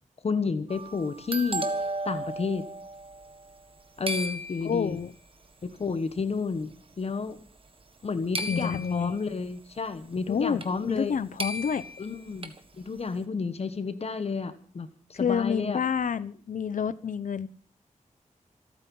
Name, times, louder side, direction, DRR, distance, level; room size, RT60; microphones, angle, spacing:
voice 1, 0.2-1.6 2.0-2.6 4.0-5.0 5.6-7.4 8.0-11.2 12.0-15.8, left 4 dB, 50° left, 11 dB, 1.3 m, -31 dB
sound 1, 0.7-3.8 4.1-5.0 5.9-6.0 6.5-6.9 8.3-9.2 10.6-10.7 11.0-11.1 11.4-12.6, right 1 dB, 40° right, 1.7 m, -35 dB
voice 2, 4.6-5.1 8.5-9.1 10.3-11.9 15.2-17.5, left 7 dB, 75° left, 16 dB, 0.9 m, -28 dB
27.0 x 9.0 x 5.6 m, 0.43 s
wide cardioid pair, 160°, 14 cm